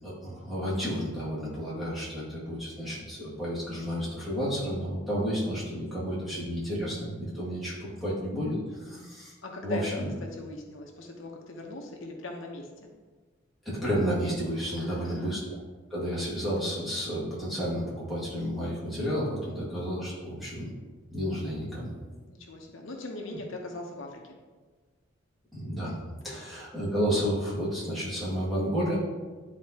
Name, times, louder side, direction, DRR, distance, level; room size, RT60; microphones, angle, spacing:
voice 1, 0.0-9.3 9.6-10.1 13.7-15.4 15.9-20.7 21.1-21.9 25.5-26.0 26.2-29.0, equal, ahead, -9 dB, 2.0 m, -31 dB
voice 2, 9.4-12.9 14.8-15.4 19.5-19.7 22.3-24.4 26.3-26.4, left 2 dB, 75° left, 1 dB, 0.9 m, -40 dB
10.5 x 4.2 x 2.8 m, 1.4 s
head